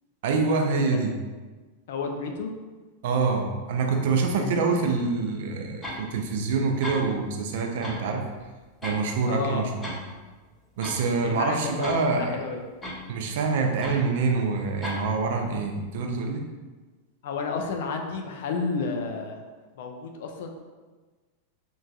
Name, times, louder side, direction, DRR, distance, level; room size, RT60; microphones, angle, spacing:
voice 1, 0.2-1.2 3.0-8.3 8.8-9.7 10.8-12.5 13.1-16.5, right 4 dB, 55° right, 3 dB, 0.3 m, -26 dB
voice 2, 1.9-2.5 4.4-4.5 9.3-9.7 11.2-12.6 17.2-19.4 19.7-20.5, left 4 dB, 55° left, 3 dB, 0.3 m, -31 dB
sound 1, 5.8-6.0 6.5-6.6 6.8-7.0 7.8-8.1 8.4-9.1 9.4-10.0 10.3-10.4 10.8-11.0 11.8-12.1 12.8-13.0 13.8-14.0 14.8-15.0, left 1 dB, 15° left, 0.8 m, -35 dB
3.0 x 2.5 x 2.3 m, 1.3 s
figure-of-eight pair, 90°, 0 cm